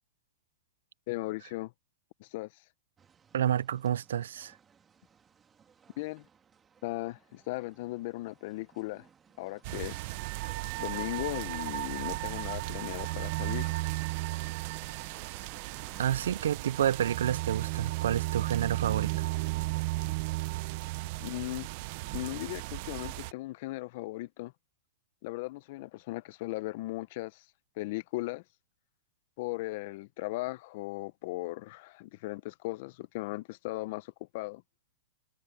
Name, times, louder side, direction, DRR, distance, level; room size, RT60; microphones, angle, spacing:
voice 1, 1.1-1.7 2.2-2.5 6.0-6.2 6.8-9.1 9.4-10.1 10.8-13.7 21.2-21.7 22.1-24.5 25.2-27.4 27.8-28.4 29.4-34.6, left 19 dB, 55° left, 0.9 m, -37 dB
sound 1, 3.0-16.0, right 7 dB, 20° right, 2.2 m, -58 dB
voice 2, 3.3-4.6 16.0-19.3, right 10 dB, 85° right, 0.4 m, -29 dB
sound 2, 9.6-23.3, right 21 dB, 50° right, 0.7 m, -35 dB
hypercardioid pair, 140°, 0 cm